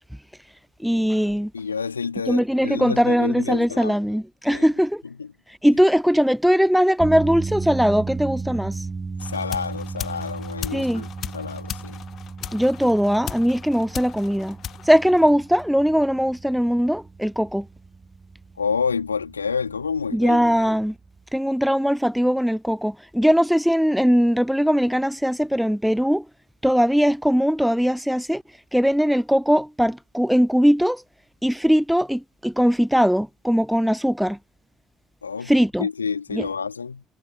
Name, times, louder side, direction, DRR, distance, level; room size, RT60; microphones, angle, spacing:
voice 1, 0.8-1.5 2.3-5.0 5.6-8.9 10.7-11.0 12.5-14.6 14.9-17.7 20.1-20.9 21.3-26.3 26.6-28.4 28.7-31.0 31.4-34.4 35.5-35.9 36.3-36.5, equal, ahead, 0.9 m, -20 dB
voice 2, 1.5-3.9 4.5-4.6 5.2-5.3 9.2-12.0 18.6-20.4 35.2-35.5 35.8-37.0, left 5 dB, 85° left, 2.8 m, -28 dB
sound 1, 7.0-21.3, right 4 dB, 25° right, 4.9 m, -35 dB
sound 2, 9.2-15.8, left 10 dB, 50° left, 1.2 m, -37 dB
figure-of-eight pair, 50°, 0 cm